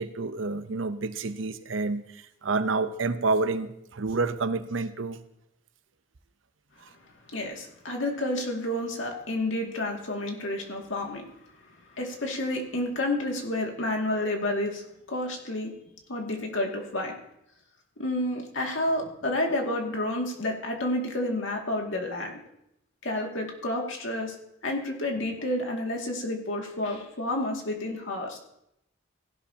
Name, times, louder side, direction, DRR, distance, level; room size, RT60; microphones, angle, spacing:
voice 1, 0.0-5.2, right 3 dB, 85° right, 11 dB, 0.8 m, -29 dB
voice 2, 7.3-11.3 11.9-14.8 15.1-15.7 16.1-17.2 18.0-22.4 23.0-24.4 24.6-28.4, left 1 dB, 85° left, 1 dB, 2.3 m, -30 dB
16.5 x 11.5 x 2.9 m, 0.79 s
head